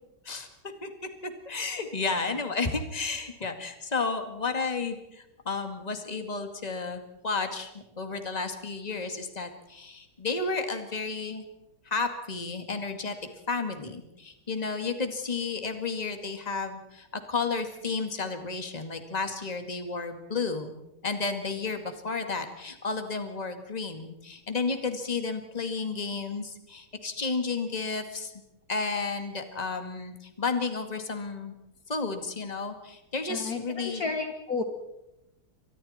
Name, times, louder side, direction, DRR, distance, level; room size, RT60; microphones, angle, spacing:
voice 1, 0.3-0.9 1.2-7.7 8.0-11.4 11.9-13.2 13.5-20.7 21.0-28.3 28.7-31.5 31.9-34.0, left 4 dB, 20° left, 6 dB, 2.2 m, -32 dB
voice 2, 33.3-34.6, left 4 dB, 45° left, 5 dB, 1.9 m, -32 dB
30.0 x 25.0 x 4.4 m, 0.91 s
omnidirectional pair, 2.3 m